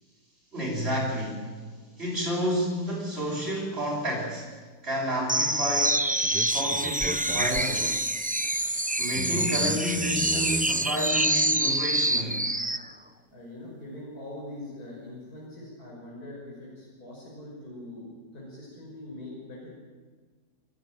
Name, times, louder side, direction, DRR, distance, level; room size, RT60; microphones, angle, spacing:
voice 1, 0.5-1.6 2.0-4.5 4.8-6.0 6.5-8.0 9.0-12.4, equal, 40° right, -7 dB, 5.4 m, -30 dB
sound 1, 5.3-12.8, right 1 dB, 10° right, 0.4 m, -26 dB
voice 2, 13.3-19.8, left 1 dB, 70° left, -5 dB, 6.5 m, -42 dB
29.0 x 13.0 x 9.1 m, 1.5 s
omnidirectional pair, 1.7 m